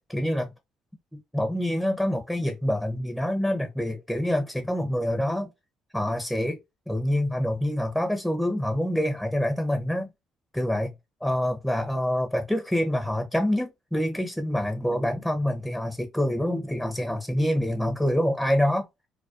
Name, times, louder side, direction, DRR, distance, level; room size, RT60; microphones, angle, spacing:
voice 1, 0.1-0.5 1.3-5.5 5.9-6.6 6.9-10.1 10.5-10.9 11.2-18.8, left 1 dB, 5° left, 0.6 m, -26 dB
2.3 x 2.2 x 2.4 m
supercardioid pair, 65°, 0 cm